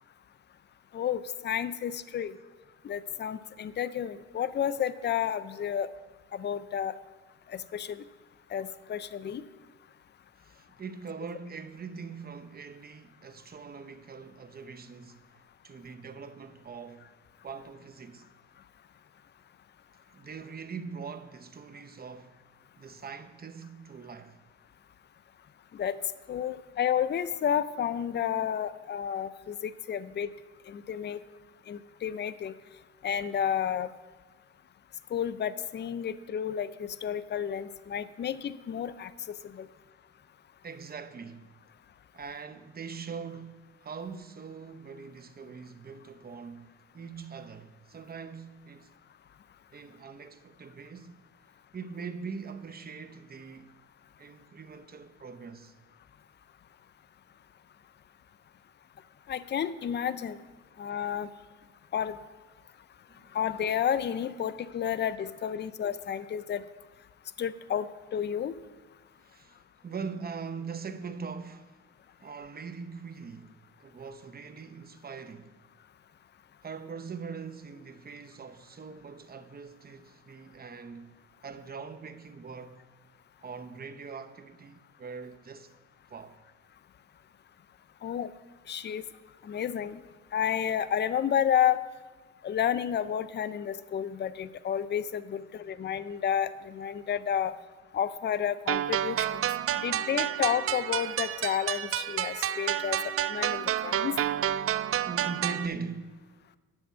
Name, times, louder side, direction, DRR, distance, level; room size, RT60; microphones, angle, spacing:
voice 1, 0.9-2.3 2.8-5.9 6.3-6.9 7.5-8.0 8.5-9.4 25.8-26.0 26.3-30.3 30.7-31.2 31.7-32.5 33.0-33.9 35.1-39.1 39.5-39.7 59.3-60.4 60.8-61.3 61.9-62.2 63.3-66.6 67.4-68.6 88.0-88.3 88.7-89.0 89.4-90.0 90.3-91.8 92.4-97.5 97.9-99.4 99.8-103.0 103.3-104.1, left 9 dB, 35° left, 0.5 m, -31 dB
voice 2, 10.4-15.2 15.6-17.1 17.4-18.3 20.1-22.4 22.8-24.4 40.6-41.5 42.1-48.9 49.7-51.2 51.7-53.7 54.2-55.7 63.1-63.4 69.2-71.7 72.2-73.5 73.8-75.5 76.6-81.1 81.4-82.8 83.4-85.7 86.1-86.4 95.5-95.9 105.0-106.2, right 5 dB, 30° right, 0.8 m, -42 dB
sound 1, 98.7-105.7, right 11 dB, 50° right, 0.4 m, -30 dB
10.5 x 7.3 x 5.6 m
cardioid pair, 90°, 30 cm